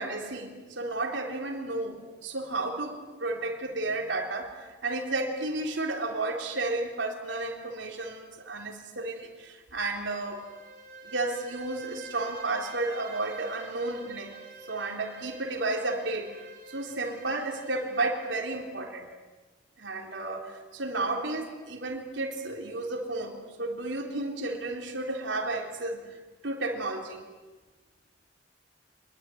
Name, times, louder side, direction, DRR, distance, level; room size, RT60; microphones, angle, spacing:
voice 1, 0.0-10.4 11.0-14.3 14.7-16.4 16.7-19.1 19.8-26.0 26.4-27.2, right 2 dB, 75° right, 1 dB, 3.7 m, -32 dB
Bowed string instrument, 10.1-18.4, right 4 dB, 50° right, 6.1 m, -47 dB
24.5 x 21.0 x 9.3 m, 1.3 s
head